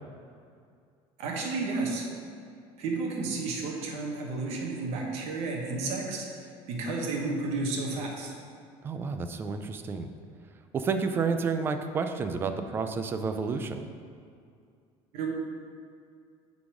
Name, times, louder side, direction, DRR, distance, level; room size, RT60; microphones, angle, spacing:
voice 1, 1.2-2.1 2.8-6.3 6.7-8.3 15.1-15.3, right 3 dB, 55° right, 0 dB, 1.2 m, -32 dB
voice 2, 8.8-10.1 10.7-13.8, right 5 dB, 20° right, 8 dB, 0.3 m, -30 dB
9.0 x 4.0 x 4.9 m, 2.4 s
cardioid pair, 180°, 12 cm